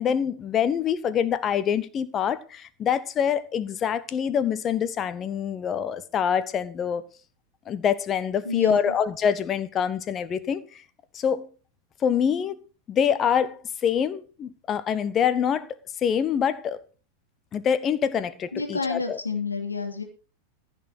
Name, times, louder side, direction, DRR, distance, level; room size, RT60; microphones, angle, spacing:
voice 1, 0.0-7.0 7.7-10.8 11.1-11.5 12.0-12.5 12.9-15.7 16.0-16.8 17.5-19.2, left 8 dB, 25° left, 1.2 m, -25 dB
voice 2, 8.4-9.0 18.5-20.0, left 4 dB, 80° left, 2.6 m, -30 dB
15.0 x 6.5 x 6.2 m
figure-of-eight pair, 90°, 0 cm